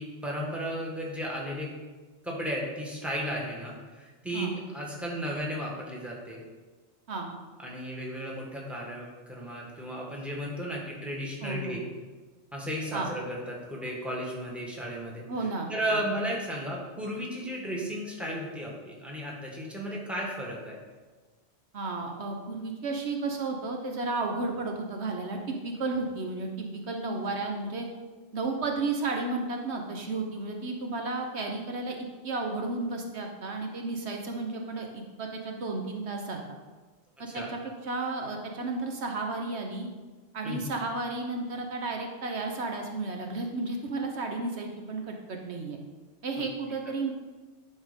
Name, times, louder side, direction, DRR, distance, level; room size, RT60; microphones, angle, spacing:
voice 1, 0.0-1.7 2.2-6.4 7.6-11.8 12.5-15.2 15.7-20.8 37.3-37.5 40.4-40.6 46.4-46.5, equal, ahead, -3 dB, 1.7 m, -34 dB
voice 2, 11.4-11.8 12.9-13.1 15.3-16.0 21.7-27.9 28.3-36.4 37.2-39.9 40.3-45.8 46.2-47.1, right 3 dB, 70° right, 2 dB, 1.2 m, -33 dB
11.0 x 4.3 x 5.2 m, 1.3 s
omnidirectional pair, 1.2 m